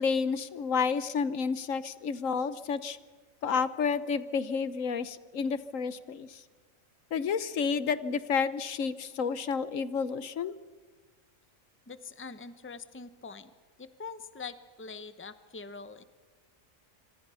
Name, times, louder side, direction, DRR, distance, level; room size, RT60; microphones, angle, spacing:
voice 1, 0.0-3.0 3.4-6.4 7.1-10.5, left 5 dB, 75° left, 14 dB, 1.3 m, -30 dB
voice 2, 11.9-13.5 13.8-16.0, left 5 dB, 10° left, 12 dB, 0.8 m, -44 dB
26.0 x 25.5 x 5.7 m, 1.4 s
omnidirectional pair, 1.4 m